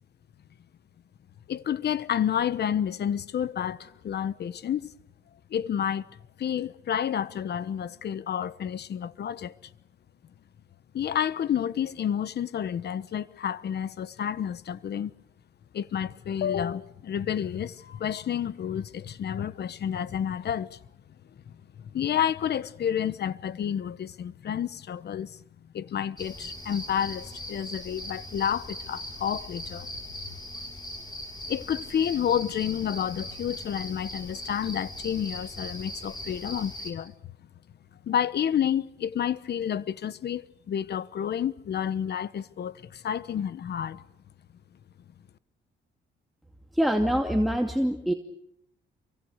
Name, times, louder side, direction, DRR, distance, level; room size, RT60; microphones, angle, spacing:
voice 1, 1.5-4.9 5.5-6.0 6.4-9.5 10.9-15.1 15.7-20.8 21.8-25.4 25.7-29.9 31.5-37.1 38.1-44.0, left 9 dB, 55° left, 1.2 m, -30 dB
sound 1, 26.2-36.9, left 1 dB, 20° left, 6.6 m, -40 dB
voice 2, 46.7-48.1, equal, ahead, 2.4 m, -24 dB
28.5 x 24.5 x 6.5 m
cardioid pair, 90°, 20 cm